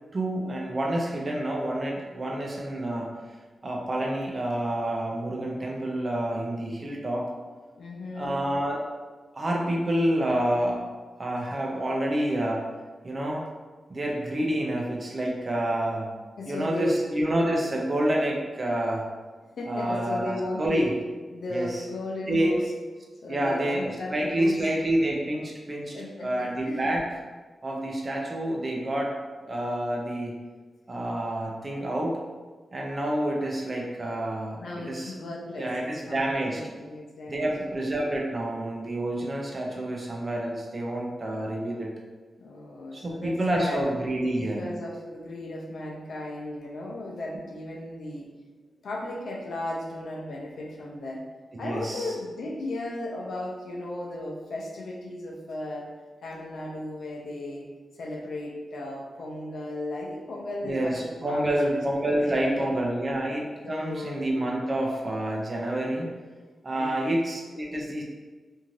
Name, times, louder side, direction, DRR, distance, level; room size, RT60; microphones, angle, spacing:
voice 1, 0.1-3.1 3.6-7.3 8.1-8.8 9.3-10.8 11.2-12.6 13.0-13.4 13.9-16.1 16.5-19.0 19.7-20.9 21.5-21.9 22.3-22.6 23.3-27.0 27.6-29.1 29.4-30.3 30.9-32.2 32.7-35.1 35.6-36.6 37.3-41.9 42.9-44.6 51.6-52.1 60.6-66.1 66.6-68.0, right 1 dB, 35° right, -1 dB, 0.5 m, -28 dB
voice 2, 7.8-8.4 16.4-17.0 19.6-21.0 21.3-22.7 23.2-24.6 25.9-27.0 34.6-37.8 42.4-43.9 44.4-48.3 48.8-51.2 51.6-55.9 56.2-57.7 57.9-62.7 63.6-64.2 66.7-67.2, left 1 dB, 75° left, -1 dB, 0.5 m, -35 dB
2.7 x 2.4 x 3.1 m, 1.3 s
wide cardioid pair, 120°, 0 cm